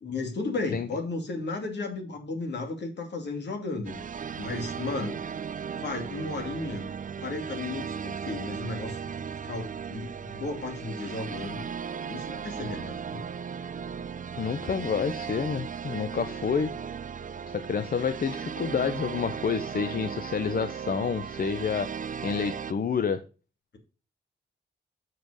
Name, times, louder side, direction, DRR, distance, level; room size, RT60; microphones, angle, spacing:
voice 1, 0.0-4.0 4.4-5.2 5.7-6.9 7.2-11.7 12.1-13.3 18.0-18.1, left 3 dB, 70° left, 4 dB, 2.4 m, -34 dB
sound 1, 3.8-22.7, right 7 dB, 45° right, 0.5 m, -36 dB
voice 2, 14.4-16.7 17.5-21.9 22.2-23.2, left 6 dB, 50° left, 11 dB, 0.7 m, -29 dB
7.6 x 5.4 x 4.8 m, 0.34 s
wide cardioid pair, 100°, 19 cm